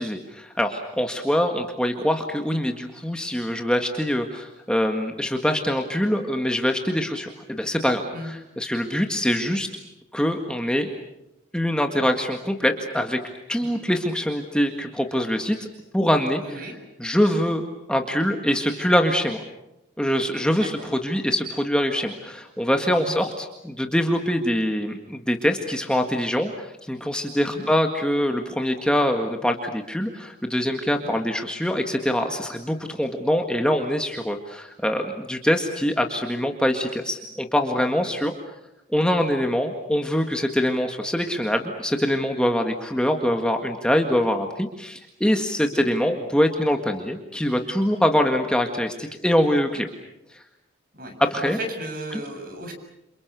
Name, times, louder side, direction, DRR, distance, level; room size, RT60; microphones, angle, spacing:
voice 1, 0.0-9.7 10.1-10.9 11.5-13.2 13.5-15.6 15.9-16.7 17.0-19.4 20.0-38.3 38.9-49.9 50.3-50.4 51.2-51.6 52.1-52.2, equal, 5° left, 4 dB, 1.8 m, -24 dB
voice 2, 16.4-16.7 20.5-20.9 22.9-23.2 27.4-27.7 30.9-31.1 45.6-45.9 50.9-51.1 51.6-52.7, right 1 dB, 45° right, 6 dB, 7.0 m, -35 dB
29.5 x 27.5 x 6.9 m, 0.89 s
head